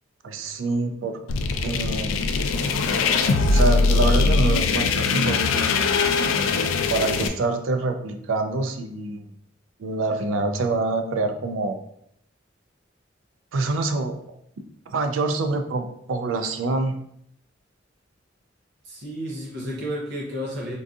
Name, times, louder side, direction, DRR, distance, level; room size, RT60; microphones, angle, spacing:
voice 1, 0.2-1.2 1.6-2.1 3.5-5.7 6.9-9.3 9.8-11.8 13.5-14.2 14.9-17.0, right 3 dB, 90° right, 6 dB, 0.4 m, -26 dB
sound 1, 1.3-7.3, left 4 dB, 90° left, 0.3 m, -21 dB
voice 2, 18.8-20.7, equal, 60° right, -4 dB, 0.7 m, -31 dB
3.8 x 2.6 x 2.3 m, 0.71 s
head